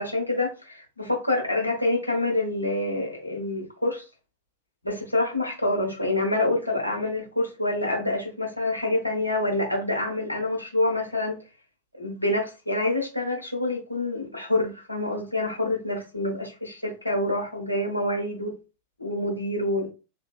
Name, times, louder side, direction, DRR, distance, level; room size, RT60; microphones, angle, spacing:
voice 1, 0.0-4.0 4.8-11.4 12.0-18.5 19.0-19.9, left 2 dB, 85° left, 1.0 m, -27 dB
3.3 x 2.6 x 2.3 m
figure-of-eight pair, 90°, 0 cm